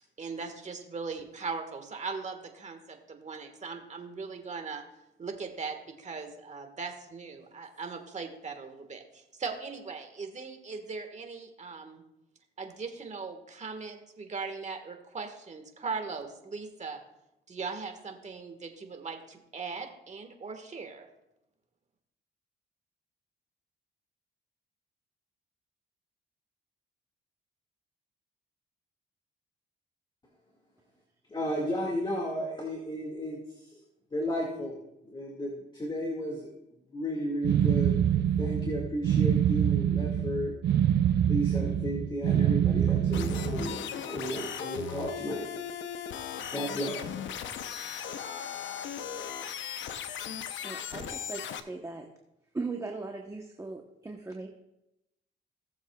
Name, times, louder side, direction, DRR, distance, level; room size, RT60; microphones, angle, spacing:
voice 1, 0.2-4.8 5.2-12.0 12.6-17.0 17.5-21.1, right 4 dB, 35° right, 5 dB, 1.6 m, -39 dB
voice 2, 31.3-33.8 34.1-34.8 35.1-36.5 36.9-40.5 41.3-45.5 46.5-47.1, equal, 25° left, -1 dB, 2.0 m, -33 dB
sound 1, 37.4-43.7, right 10 dB, 60° right, 0.5 m, -25 dB
sound 2, 43.1-51.6, left 8 dB, 70° left, 0.8 m, -37 dB
voice 3, 50.6-52.1 52.5-54.5, right 3 dB, 15° right, 2 dB, 1.0 m, -38 dB
18.0 x 7.2 x 2.3 m, 0.87 s
cardioid pair, 90°, 20 cm